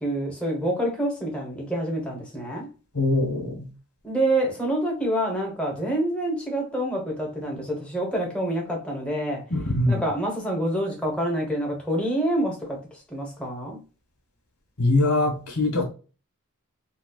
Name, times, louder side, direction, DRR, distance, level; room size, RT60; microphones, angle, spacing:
voice 1, 0.0-2.7 4.0-9.4 9.9-12.8 13.1-13.8, right 1 dB, 5° left, 1.2 m, -27 dB
voice 2, 2.9-3.7 9.5-10.1 14.8-15.8, left 2 dB, 80° left, 1.7 m, -22 dB
4.1 x 2.3 x 2.3 m
head